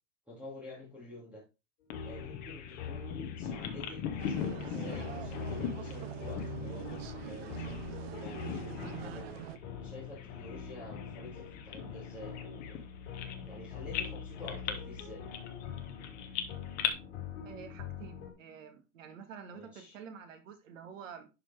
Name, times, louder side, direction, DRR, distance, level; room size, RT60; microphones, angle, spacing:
voice 1, 0.3-1.4 2.0-9.3 9.8-12.8 13.5-15.2 19.5-20.0, left 1 dB, 5° right, 2.3 m, -48 dB
sound 1, 1.9-18.3, left 7 dB, 55° left, 3.0 m, -43 dB
Bird vocalization bird call bird song, 1.9-7.9 8.1-9.1 9.4-9.6 10.2-13.6 13.9-16.9, left 9 dB, 20° left, 0.9 m, -40 dB
sound 2, 4.2-9.6, right 13 dB, 50° right, 0.6 m, -44 dB
voice 2, 17.4-21.3, right 7 dB, 75° right, 2.2 m, -48 dB
11.5 x 5.0 x 3.4 m
supercardioid pair, 175°, 39 cm